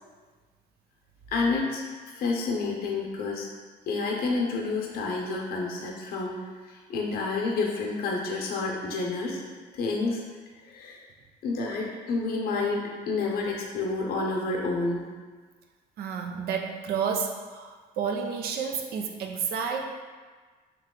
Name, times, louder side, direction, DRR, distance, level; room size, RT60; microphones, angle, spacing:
voice 1, 1.3-3.5 3.9-9.4 9.7-10.2 10.6-11.0 11.4-15.0, left 3 dB, 65° left, -1 dB, 0.7 m, -29 dB
voice 2, 16.0-20.0, right 6 dB, 65° right, 3 dB, 0.5 m, -31 dB
3.3 x 3.0 x 3.7 m, 1.4 s
cardioid pair, 110°, 17 cm